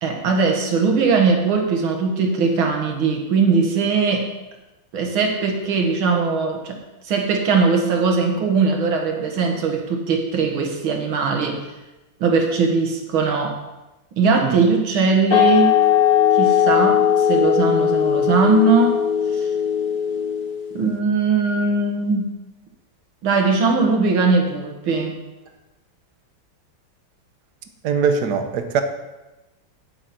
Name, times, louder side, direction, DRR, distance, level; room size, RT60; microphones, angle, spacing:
voice 1, 0.0-4.3 4.9-6.8 7.1-11.6 12.2-13.6 14.2-15.8 16.3-19.1 19.3-19.5 20.7-22.3 23.2-25.2, right 4 dB, 90° right, 2 dB, 2.2 m, -20 dB
sound 1, 15.3-20.7, left 9 dB, 65° left, 0.8 m, -18 dB
voice 2, 27.8-28.8, right 6 dB, 65° right, 8 dB, 1.3 m, -21 dB
9.1 x 8.8 x 4.3 m, 1.1 s
omnidirectional pair, 2.2 m